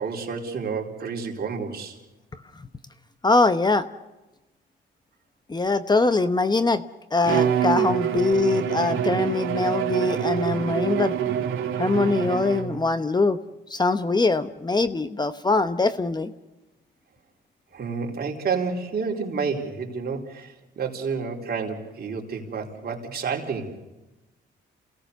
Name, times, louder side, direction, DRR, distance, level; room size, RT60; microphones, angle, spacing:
voice 1, 0.0-2.0 17.7-23.8, right 5 dB, 50° right, 0 dB, 4.1 m, -30 dB
voice 2, 3.2-3.9 5.5-6.8 7.1-11.1 11.8-13.4 13.7-16.3, left 3 dB, 20° left, 11 dB, 1.0 m, -22 dB
Bowed string instrument, 7.2-12.9, right 9 dB, 85° right, 2.2 m, -26 dB
28.5 x 17.5 x 6.7 m, 1.0 s
cardioid pair, 90°, 20 cm